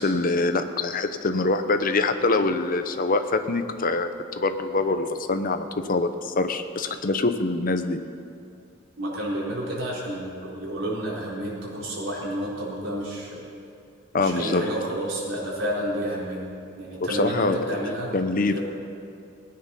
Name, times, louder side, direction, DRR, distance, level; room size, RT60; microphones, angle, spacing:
voice 1, 0.0-4.1 4.4-8.0 14.1-14.6 17.2-17.8 18.1-18.6, left 3 dB, 45° left, 8 dB, 0.8 m, -24 dB
voice 2, 9.0-13.4 14.1-16.5 16.8-18.1 18.5-18.6, right 1 dB, 75° right, -5 dB, 4.1 m, -30 dB
19.0 x 9.9 x 5.7 m, 2.5 s
head